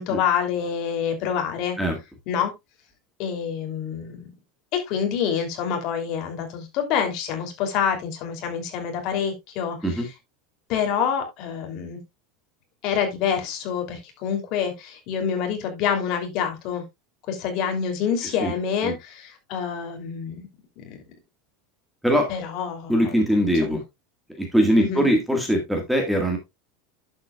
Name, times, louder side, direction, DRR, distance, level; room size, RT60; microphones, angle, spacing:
voice 1, 0.0-1.8 2.3-2.5 3.2-4.3 4.7-10.1 10.7-12.0 12.8-16.8 17.3-20.5 20.8-21.0 22.3-23.2 23.5-23.8 24.8-25.1, left 7 dB, 40° left, 3.0 m, -27 dB
voice 2, 22.9-23.8 24.4-26.4, equal, ahead, 1.7 m, -21 dB
11.0 x 7.5 x 2.3 m
supercardioid pair, 170°, 0 cm